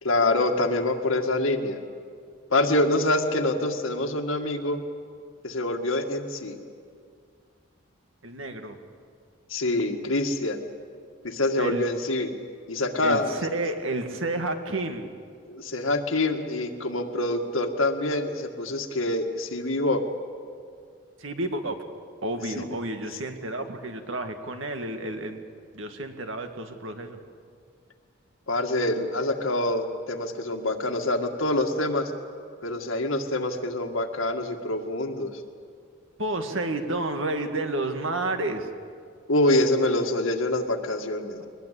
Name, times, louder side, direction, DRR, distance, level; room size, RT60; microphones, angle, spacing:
voice 1, 0.0-1.8 2.5-4.8 5.4-6.6 9.5-10.6 11.2-12.3 12.7-13.3 15.5-20.0 22.6-22.7 28.5-32.1 32.6-35.3 39.3-41.5, left 2 dB, 75° left, 4 dB, 2.0 m, -25 dB
voice 2, 8.2-8.8 11.6-11.8 13.0-15.1 21.2-21.9 22.2-25.4 25.7-27.2 36.2-38.7 41.4-41.5, right 2 dB, 70° right, 6 dB, 2.0 m, -30 dB
23.5 x 20.5 x 8.4 m, 2.2 s
head